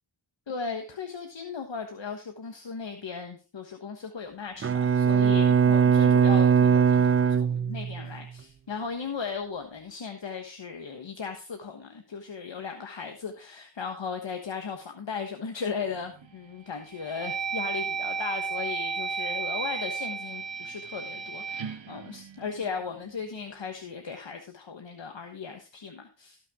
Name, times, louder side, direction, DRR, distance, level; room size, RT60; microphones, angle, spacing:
voice 1, 0.5-26.4, left 5 dB, 75° left, 5 dB, 1.4 m, -37 dB
Bowed string instrument, 4.6-8.2, right 7 dB, 30° right, 0.4 m, -21 dB
sound 1, 15.9-16.3 16.8-23.0, right 5 dB, 80° right, 1.2 m, -34 dB
17.5 x 5.9 x 3.6 m, 0.31 s
wide cardioid pair, 55°, 45 cm